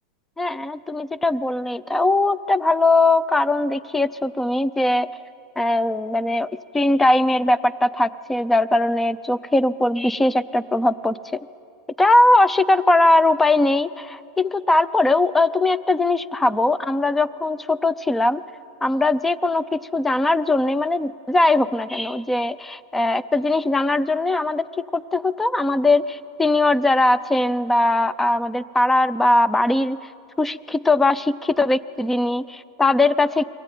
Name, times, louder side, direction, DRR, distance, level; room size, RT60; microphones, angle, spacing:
voice 1, 0.4-5.1 5.6-11.1 12.0-18.4 18.8-24.7 24.9-30.0 30.4-33.4, left 2 dB, 5° left, 16 dB, 0.5 m, -20 dB
24.0 x 17.5 x 9.1 m, 2.6 s
supercardioid pair, 140°, 3 cm